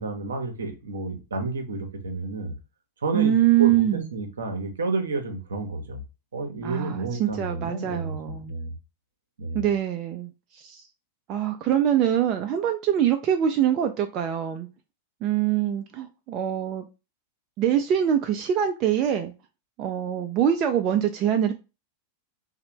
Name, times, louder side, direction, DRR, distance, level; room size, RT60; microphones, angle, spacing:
voice 1, 0.0-2.5 3.0-6.0 6.3-8.7 9.4-9.7, right 3 dB, 70° right, 0.7 m, -31 dB
voice 2, 3.1-4.1 6.6-8.5 9.5-10.9 11.3-14.7 15.2-16.8 17.6-19.3 19.8-21.5, right 10 dB, 35° right, 0.3 m, -24 dB
3.1 x 2.1 x 2.9 m
figure-of-eight pair, 90°, 0 cm